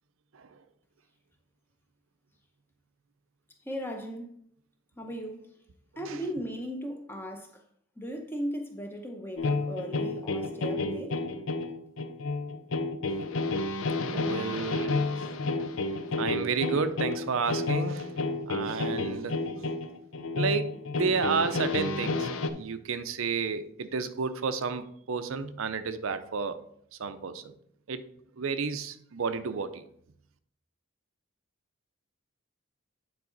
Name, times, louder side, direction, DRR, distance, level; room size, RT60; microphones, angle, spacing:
voice 1, 3.6-4.4 5.0-5.5 6.0-7.6 8.0-11.2, equal, 10° left, 0.7 m, -37 dB
sound 1, 9.4-22.5, left 3 dB, 65° left, 0.5 m, -31 dB
voice 2, 14.1-15.0 16.2-18.1 18.5-19.7 20.3-26.6 27.0-27.5 27.9-28.0 28.4-29.8, right 5 dB, 70° right, 0.5 m, -31 dB
9.4 x 4.0 x 3.9 m
head